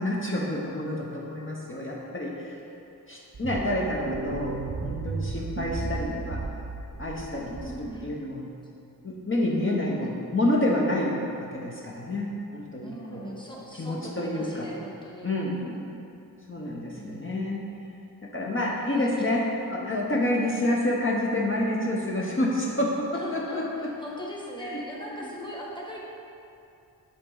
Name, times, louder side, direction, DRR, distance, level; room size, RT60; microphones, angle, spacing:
voice 1, 0.0-2.6 3.1-6.4 7.0-7.5 7.8-8.4 9.0-13.3 13.8-14.7 15.2-15.5 16.5-17.7 18.2-23.9 24.6-24.8, left 1 dB, 35° left, -3 dB, 0.8 m, -28 dB
sound 1, 3.3-8.0, right 4 dB, 35° right, 0.4 m, -34 dB
voice 2, 3.5-4.1 5.8-6.3 7.5-8.1 9.5-10.2 12.8-15.9 16.9-17.6 18.7-20.0 20.5-20.8 23.1-26.0, equal, 10° left, -3 dB, 1.1 m, -40 dB
9.8 x 4.0 x 3.8 m, 2.7 s
wide cardioid pair, 100°, 38 cm